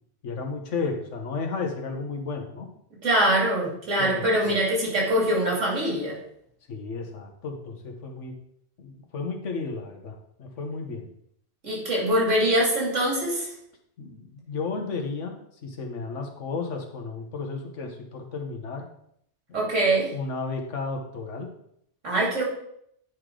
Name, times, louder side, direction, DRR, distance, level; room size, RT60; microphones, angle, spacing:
voice 1, 0.2-2.7 4.0-4.6 6.7-8.3 8.8-11.1 14.0-15.3 15.6-18.8 19.5-19.7 20.1-21.5, left 4 dB, 75° left, 3 dB, 1.4 m, -33 dB
voice 2, 3.0-6.2 11.6-13.5 19.5-20.1 22.0-22.4, right 1 dB, 85° right, -3 dB, 2.9 m, -23 dB
9.4 x 4.9 x 3.8 m, 0.72 s
omnidirectional pair, 1.2 m